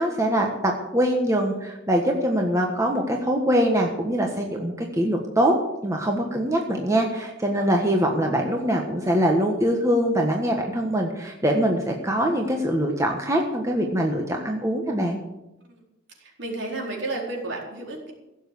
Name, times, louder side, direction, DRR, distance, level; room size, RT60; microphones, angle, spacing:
voice 1, 0.0-5.6 5.8-15.2, equal, 15° right, 1 dB, 1.3 m, -23 dB
voice 2, 16.2-18.1, right 2 dB, 60° right, -1 dB, 4.2 m, -32 dB
16.5 x 7.3 x 8.4 m, 0.96 s
head